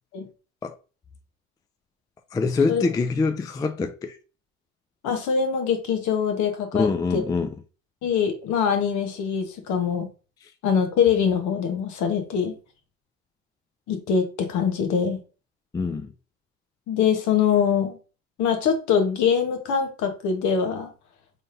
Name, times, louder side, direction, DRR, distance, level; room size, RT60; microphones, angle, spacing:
voice 1, 2.3-4.2 6.7-7.5 15.7-16.1, left 4 dB, 10° left, 0.3 m, -24 dB
voice 2, 5.0-7.2 8.0-10.1 10.6-12.5 13.9-15.2 16.9-18.0 18.4-20.9, left 7 dB, 55° left, 1.2 m, -23 dB
3.9 x 3.5 x 2.6 m
hypercardioid pair, 70°, 34 cm